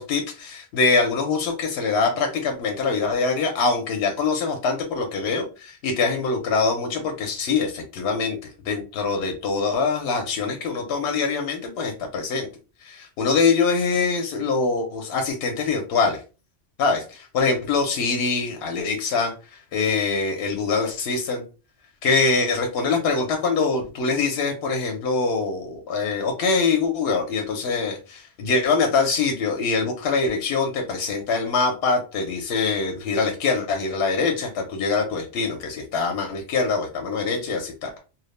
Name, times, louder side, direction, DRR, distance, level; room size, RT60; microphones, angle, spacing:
voice 1, 0.0-12.5 12.8-16.2 16.8-21.4 22.0-37.9, left 4 dB, 70° left, 4 dB, 0.8 m, -24 dB
2.2 x 2.0 x 3.0 m, 0.33 s
omnidirectional pair, 1.1 m